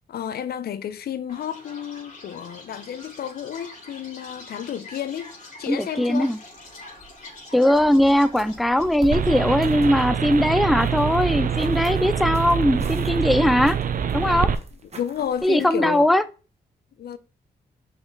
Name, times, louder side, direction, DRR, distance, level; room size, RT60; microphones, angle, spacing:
voice 1, 0.1-6.3 14.9-16.1 17.0-17.2, left 9 dB, 70° left, 0.5 m, -31 dB
Chirp tweet, 1.3-12.4, left 2 dB, 50° left, 2.6 m, -45 dB
voice 2, 5.7-6.4 7.5-13.8 14.1-14.5 15.4-16.2, left 1 dB, ahead, 0.4 m, -20 dB
sound 1, 6.2-7.4 7.6-15.7, right 3 dB, 40° right, 1.2 m, -43 dB
sound 2, 9.1-14.6, right 7 dB, 55° right, 0.6 m, -25 dB
5.7 x 4.3 x 3.9 m
cardioid pair, 60°, 17 cm